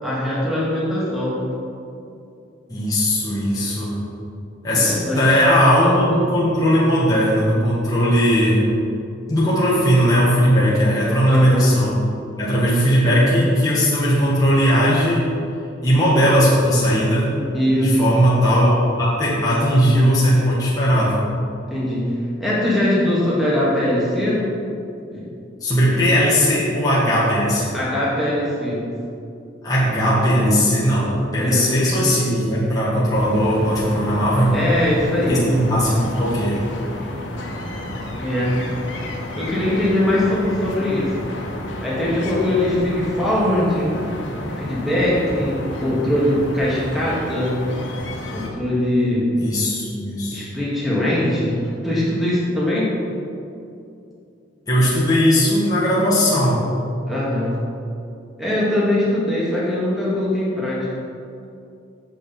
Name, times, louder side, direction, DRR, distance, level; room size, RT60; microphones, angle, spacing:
voice 1, 0.0-1.4 4.7-5.2 11.3-11.7 17.5-18.1 21.7-22.1 22.4-24.5 25.1-25.3 27.7-28.8 31.3-31.7 34.5-35.5 38.2-38.6 39.4-41.1 41.8-43.9 44.6-47.5 48.3-49.3 50.3-51.6 51.8-52.9 57.1-57.6 58.4-60.9, left 1 dB, ahead, -8 dB, 2.2 m, -21 dB
voice 2, 2.7-4.0 4.6-8.7 9.3-12.0 12.4-15.3 15.8-17.3 17.8-21.2 25.6-27.8 29.6-34.6 35.3-36.6 49.3-50.4 54.7-56.6, equal, 20° left, -8 dB, 1.5 m, -18 dB
sound 1, 33.1-48.5, left 1 dB, 75° left, 1.3 m, -31 dB
8.4 x 6.5 x 5.4 m, 2.6 s
head